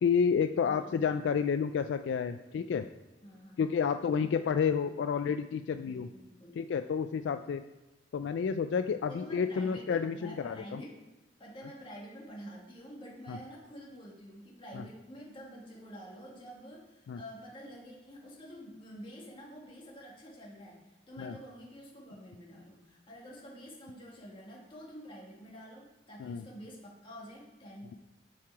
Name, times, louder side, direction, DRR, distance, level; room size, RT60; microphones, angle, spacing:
voice 1, 0.0-2.9 3.6-6.1 6.6-7.6 8.1-10.8 13.3-13.4 14.7-14.8 17.1-17.2 21.2-21.3 26.2-26.5, left 6 dB, 70° left, 9 dB, 0.3 m, -30 dB
voice 2, 0.5-0.9 3.2-4.1 5.8-6.6 9.0-11.0 11.4-28.0, equal, 30° left, -3 dB, 1.9 m, -48 dB
7.1 x 4.7 x 4.7 m, 1.1 s
head